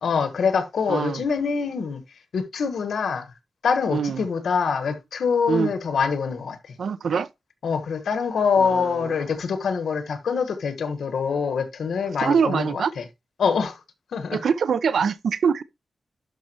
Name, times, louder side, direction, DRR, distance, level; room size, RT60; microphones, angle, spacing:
voice 1, 0.0-2.0 2.3-3.3 3.6-6.7 7.6-12.7 13.0-13.1 13.4-13.8 14.1-14.4, left 5 dB, 80° left, 1.3 m, -24 dB
voice 2, 0.9-1.2 3.9-4.2 5.5-5.7 6.8-7.3 8.6-9.1 12.2-12.9 14.3-15.6, right 6 dB, 75° right, 0.5 m, -24 dB
11.5 x 5.3 x 2.9 m
wide cardioid pair, 150°, 0 cm